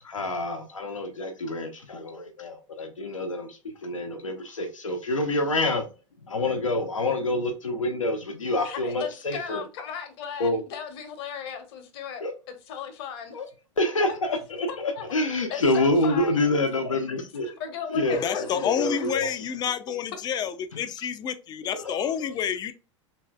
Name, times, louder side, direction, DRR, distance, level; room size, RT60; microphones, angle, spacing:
voice 1, 0.0-5.9 6.3-9.6 10.4-10.6 12.2-12.3 13.3-13.5 13.8-17.6 17.9-19.3 21.7-22.3, left 2 dB, 90° left, 0.6 m, -27 dB
voice 2, 8.6-12.2 12.7-13.3 14.1-14.2 14.7-15.1 15.5-16.4 17.6-19.0 22.4-22.5, left 7 dB, 55° left, 0.8 m, -36 dB
voice 3, 18.1-22.7, left 8 dB, 25° left, 0.4 m, -29 dB
3.1 x 2.6 x 2.2 m
hypercardioid pair, 95°, 16 cm